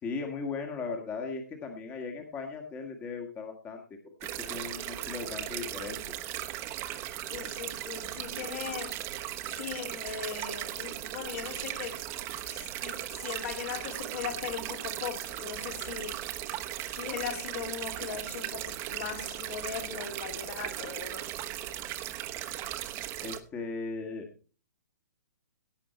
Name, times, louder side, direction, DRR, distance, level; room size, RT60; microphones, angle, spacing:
voice 1, 0.0-3.8 4.4-6.0 23.2-24.3, left 4 dB, 20° left, 1.8 m, -37 dB
sound 1, 4.2-23.4, right 13 dB, 25° right, 1.2 m, -37 dB
voice 2, 7.3-9.0 9.5-12.0 12.4-16.2 16.9-21.3, left 8 dB, 50° left, 3.1 m, -39 dB
16.5 x 7.7 x 4.3 m
figure-of-eight pair, 120°, 9 cm